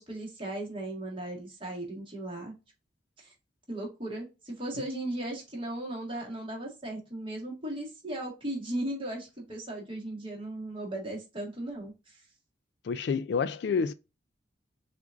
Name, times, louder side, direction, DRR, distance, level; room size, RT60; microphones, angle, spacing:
voice 1, 0.0-2.5 3.2-3.3 3.7-12.2, right 1 dB, 25° right, 1.6 m, -37 dB
voice 2, 12.8-13.9, left 5 dB, 60° left, 0.3 m, -28 dB
5.9 x 2.5 x 2.4 m
head